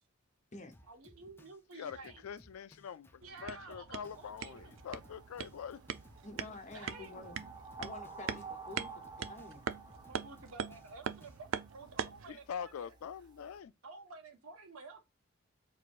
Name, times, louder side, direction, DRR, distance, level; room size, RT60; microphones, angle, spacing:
Drum kit, 0.7-11.4, equal, 10° left, 0.4 m, -62 dB
voice 1, 0.9-2.2 3.2-4.7 6.7-7.5 10.1-12.9 13.8-15.0, right 3 dB, 90° right, 1.2 m, -52 dB
voice 2, 1.7-5.8 12.3-13.7, left 7 dB, 90° left, 0.4 m, -44 dB
sound 1, 3.2-12.3, right 7 dB, 65° right, 0.4 m, -43 dB
sound 2, 4.1-13.6, right 4 dB, 20° right, 0.8 m, -52 dB
voice 3, 6.2-7.4 7.8-8.9 9.3-9.6, left 2 dB, 35° left, 0.9 m, -48 dB
4.6 x 2.9 x 2.5 m
head